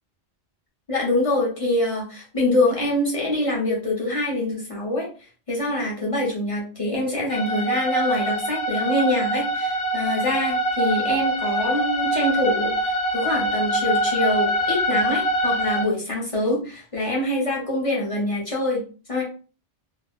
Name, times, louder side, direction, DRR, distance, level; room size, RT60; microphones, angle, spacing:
voice 1, 0.9-5.1 5.5-18.8 19.1-19.2, left 1 dB, 35° left, -3 dB, 0.8 m, -25 dB
sound 1, 7.3-15.8, right 1 dB, 70° left, 0.9 m, -24 dB
2.3 x 2.1 x 3.5 m, 0.38 s
omnidirectional pair, 1.2 m